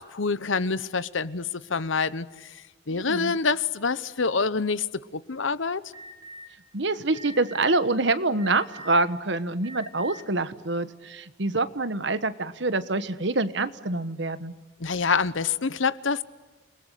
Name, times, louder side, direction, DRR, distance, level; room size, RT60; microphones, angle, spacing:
voice 1, 0.0-4.9 5.1-5.8 14.8-16.2, left 4 dB, 75° left, 0.9 m, -26 dB
voice 2, 2.9-3.3 6.7-14.5, right 2 dB, 60° right, 1.3 m, -26 dB
Alarm, 5.9-6.4 7.1-7.7 8.4-9.0 9.6-10.2, equal, 15° right, 4.1 m, -43 dB
29.5 x 20.0 x 10.0 m
head